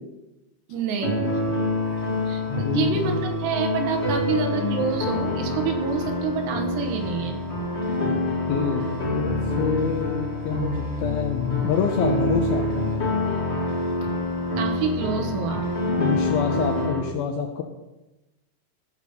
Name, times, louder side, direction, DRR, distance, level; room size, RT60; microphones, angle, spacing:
voice 1, 0.7-1.5 2.3-7.4 14.6-15.7, right 6 dB, 75° right, 4 dB, 3.3 m, -28 dB
sound 1, 1.0-17.0, left 2 dB, 55° left, 0.7 m, -26 dB
sound 2, 1.2-16.9, right 1 dB, 55° right, 3.6 m, -45 dB
voice 2, 2.5-3.2 8.0-8.2 8.5-8.8 9.2-12.6 16.0-17.6, left 7 dB, 80° left, 4 dB, 2.2 m, -27 dB
15.0 x 5.0 x 6.6 m, 1.0 s
omnidirectional pair, 5.1 m